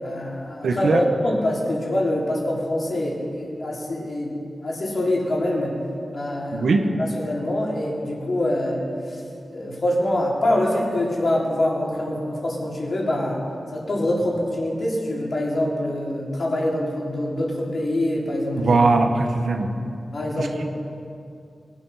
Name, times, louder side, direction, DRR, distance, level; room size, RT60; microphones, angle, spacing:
voice 1, 0.0-4.4 4.6-5.8 6.1-8.8 9.1-9.2 9.5-13.4 13.7-18.8 19.6-19.7 20.1-20.7, left 1 dB, 55° left, -3 dB, 3.6 m, -25 dB
voice 2, 0.6-1.0 6.5-6.8 18.6-19.7 20.4-20.7, right 3 dB, 90° right, 4 dB, 1.3 m, -20 dB
22.5 x 8.8 x 5.8 m, 2.5 s
wide cardioid pair, 110°, 0 cm